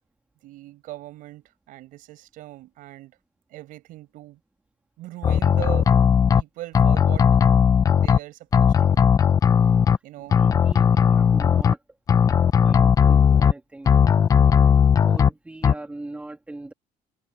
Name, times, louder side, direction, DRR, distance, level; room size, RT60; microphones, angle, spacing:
voice 1, 0.4-3.2 3.5-4.4 5.0-5.9 6.3-7.4 7.9-9.1 10.0-10.5, right 16 dB, 65° right, 7.5 m, -40 dB
sound 1, 5.2-6.4 6.7-8.2 8.5-10.0 10.3-11.7 12.1-13.5 13.9-15.3 15.6-15.7, left 7 dB, 25° left, 0.6 m, -17 dB
voice 2, 10.2-11.8 12.6-13.9 15.0-16.7, right 2 dB, 10° right, 2.6 m, -39 dB
cardioid pair, 175°, 15 cm